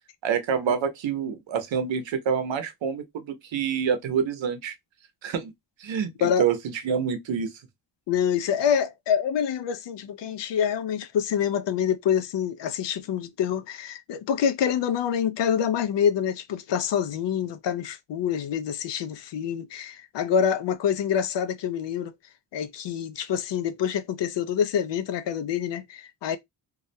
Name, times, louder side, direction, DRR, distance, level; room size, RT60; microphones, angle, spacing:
voice 1, 0.2-4.7 5.2-5.5 5.8-6.6 6.8-7.5, right 7 dB, 75° right, 0.7 m, -27 dB
voice 2, 8.1-22.1 22.5-26.4, left 8 dB, 65° left, 0.5 m, -26 dB
2.4 x 2.1 x 2.5 m
cardioid pair, 85°, 46 cm